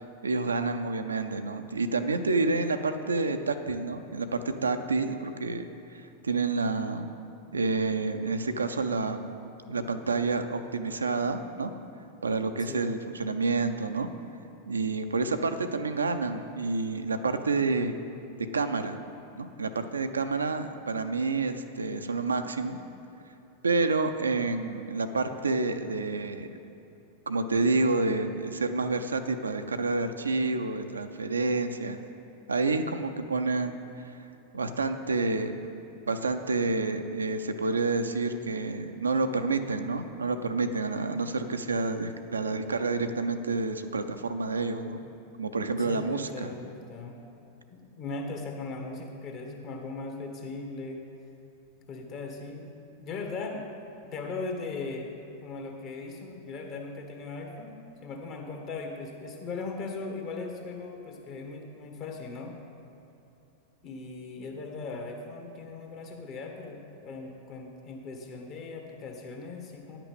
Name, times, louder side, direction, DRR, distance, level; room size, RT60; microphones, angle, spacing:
voice 1, 0.0-7.1 7.5-9.2 9.7-11.7 12.2-14.1 14.7-17.9 18.5-19.0 19.3-22.8 23.6-26.6 27.3-32.0 32.5-34.1 34.5-35.5 36.0-45.0 45.4-46.5, right 3 dB, 75° right, 8 dB, 0.5 m, -29 dB
voice 2, 12.6-12.9 45.8-47.2 47.7-51.0 51.9-52.7 53.0-53.6 54.1-55.1 55.4-62.5 63.8-70.0, left 3 dB, 40° left, 2 dB, 1.5 m, -38 dB
10.0 x 5.9 x 6.9 m, 2.9 s
figure-of-eight pair, 90°, 0 cm